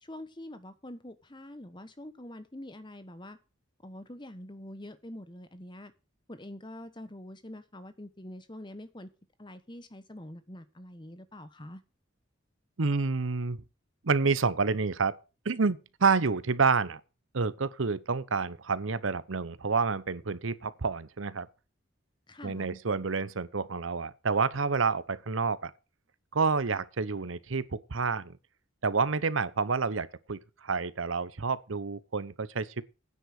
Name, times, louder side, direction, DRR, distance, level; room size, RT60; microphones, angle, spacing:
voice 1, 0.0-3.4 3.8-5.9 6.3-9.1 9.4-11.8 22.3-22.8, left 1 dB, 25° left, 1.3 m, -45 dB
voice 2, 12.8-13.6 14.0-15.2 15.4-17.0 17.3-21.5 22.4-25.7 26.3-28.4 28.8-32.8, right 4 dB, 85° right, 0.9 m, -29 dB
9.8 x 7.7 x 6.4 m
head